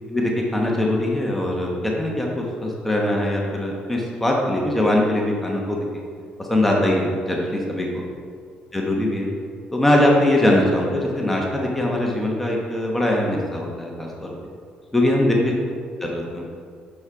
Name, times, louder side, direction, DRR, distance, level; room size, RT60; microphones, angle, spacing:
voice 1, 0.1-5.8 6.4-8.0 8.7-9.3 9.7-14.3 14.9-15.5 16.0-16.4, left 1 dB, 10° left, -2 dB, 1.0 m, -21 dB
6.3 x 6.3 x 4.6 m, 2.1 s
cardioid pair, 145°, 3 cm